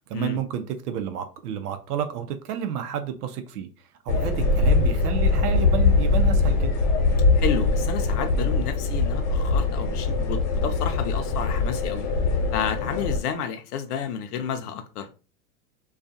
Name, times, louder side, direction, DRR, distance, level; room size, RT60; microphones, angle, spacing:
voice 1, 0.1-3.7 4.1-6.8, right 8 dB, 85° right, 0.6 m, -30 dB
sound 1, 4.1-13.2, left 3 dB, 55° left, 1.0 m, -22 dB
voice 2, 7.3-12.0 12.5-15.1, left 7 dB, 85° left, 0.6 m, -31 dB
2.3 x 2.3 x 2.5 m
hypercardioid pair, 120°, 45 cm